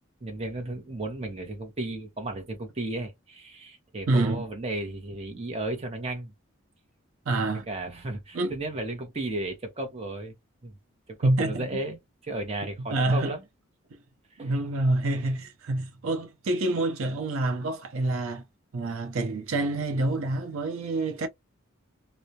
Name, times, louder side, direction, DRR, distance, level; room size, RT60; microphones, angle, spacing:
voice 1, 0.2-6.3 7.7-10.3 10.6-10.8 11.1-13.4 14.3-14.5, right 2 dB, 30° right, 0.6 m, -34 dB
voice 2, 4.1-4.4 7.3-7.7 8.3-8.5 11.2-11.7 12.9-13.3 14.4-18.4 18.7-21.3, right 2 dB, 75° right, 0.5 m, -27 dB
2.2 x 2.0 x 2.7 m
head